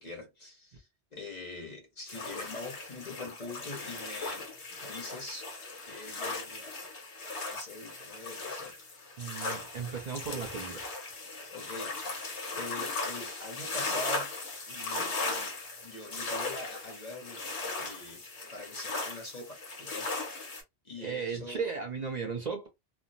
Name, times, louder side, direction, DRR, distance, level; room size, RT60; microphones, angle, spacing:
voice 1, 0.0-4.5 4.8-5.5 5.8-6.9 7.5-8.8 11.5-11.9 12.5-14.3 14.7-15.5 15.8-18.2 18.5-20.5 20.8-21.7, left 2 dB, 45° left, 0.8 m, -44 dB
sound 1, 2.1-20.6, left 3 dB, 90° left, 1.4 m, -38 dB
voice 2, 9.2-10.8 21.0-22.7, right 5 dB, 50° right, 0.6 m, -36 dB
3.2 x 2.0 x 2.5 m
omnidirectional pair, 1.1 m